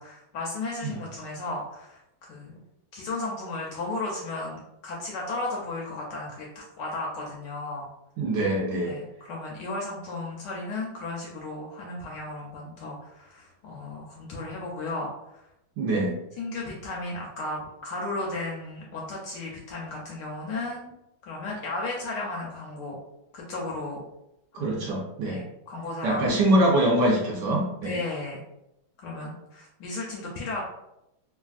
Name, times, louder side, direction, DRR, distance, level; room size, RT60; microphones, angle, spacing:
voice 1, 0.0-2.6 2.9-7.9 8.8-15.1 15.3-15.5 16.4-20.9 21.2-23.0 23.3-24.0 24.6-24.9 25.2-26.3 27.8-28.4 29.0-30.6, left 2 dB, 75° left, -2 dB, 1.0 m, -34 dB
voice 2, 8.2-9.0 15.8-16.2 24.5-25.4 26.0-28.0, right 1 dB, 75° right, -2 dB, 1.0 m, -24 dB
3.3 x 2.3 x 2.3 m, 0.86 s
omnidirectional pair, 2.2 m